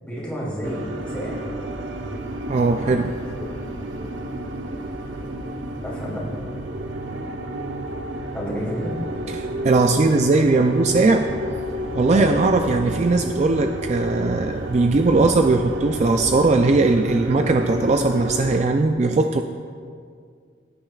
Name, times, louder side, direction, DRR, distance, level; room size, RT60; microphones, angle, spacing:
voice 1, 0.0-1.4 2.6-2.9 3.4-3.5 5.8-6.3 8.3-8.9 12.1-12.4, equal, 5° left, -7 dB, 2.8 m, -30 dB
sound 1, 0.6-18.6, right 1 dB, 90° right, 0.9 m, -31 dB
voice 2, 2.5-3.1 9.3-11.3 11.9-19.4, right 3 dB, 35° right, 6 dB, 0.3 m, -19 dB
17.5 x 8.8 x 2.3 m, 2.1 s
head